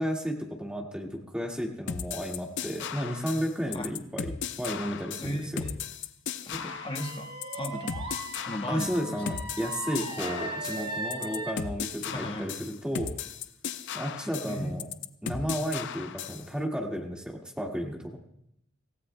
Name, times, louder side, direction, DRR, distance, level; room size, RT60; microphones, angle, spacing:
voice 1, 0.0-5.6 8.7-13.1 13.9-14.9 15.2-18.2, equal, 5° right, 0 dB, 1.9 m, -33 dB
sound 1, 1.9-16.5, left 7 dB, 60° left, 0.5 m, -37 dB
voice 2, 5.2-5.8 6.5-8.1 8.5-9.2 12.1-12.5 14.5-15.0 15.3-15.5, equal, 25° left, 3 dB, 1.3 m, -36 dB
Wind instrument woodwind instrument, 6.5-11.6, right 2 dB, 30° right, 1.9 m, -40 dB
sound 2, 6.5-8.3 9.6-11.7, right 2 dB, 55° right, 1.6 m, -42 dB
25.5 x 15.5 x 2.2 m, 0.76 s
head